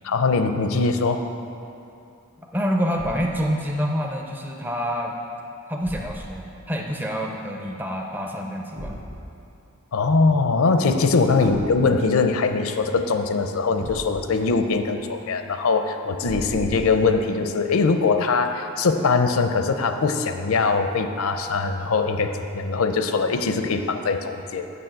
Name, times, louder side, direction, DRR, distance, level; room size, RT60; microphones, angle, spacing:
voice 1, 0.0-1.3 9.9-24.7, left 4 dB, 65° left, 8 dB, 0.6 m, -22 dB
voice 2, 2.5-5.1 5.7-9.0 11.3-12.0 23.6-23.7, equal, 10° right, 0 dB, 0.5 m, -27 dB
Thump thud, 2.9-3.5 5.8-6.5 8.8-9.2 11.5-12.0 13.8-14.4 16.2-17.2, equal, 45° right, 1.1 m, -37 dB
6.9 x 6.2 x 7.6 m, 2.7 s
head